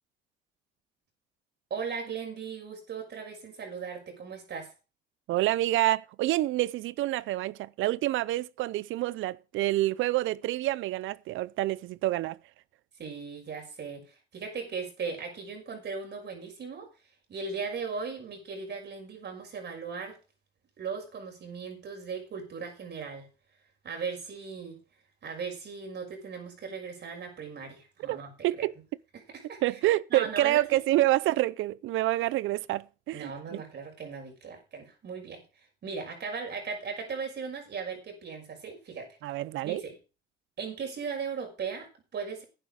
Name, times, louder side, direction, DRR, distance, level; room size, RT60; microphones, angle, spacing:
voice 1, 1.7-4.7 13.0-16.9 17.3-20.2 20.8-23.3 23.8-24.8 25.2-28.7 29.3-29.8 30.1-30.8 33.1-39.2 39.6-40.0 40.6-42.4, right 5 dB, 60° right, 6.2 m, -38 dB
voice 2, 5.3-12.4 28.1-28.2 28.4-28.7 29.6-33.6 39.2-39.8, right 16 dB, 85° right, 0.5 m, -27 dB
11.5 x 9.8 x 5.1 m
cardioid pair, 90°, 20 cm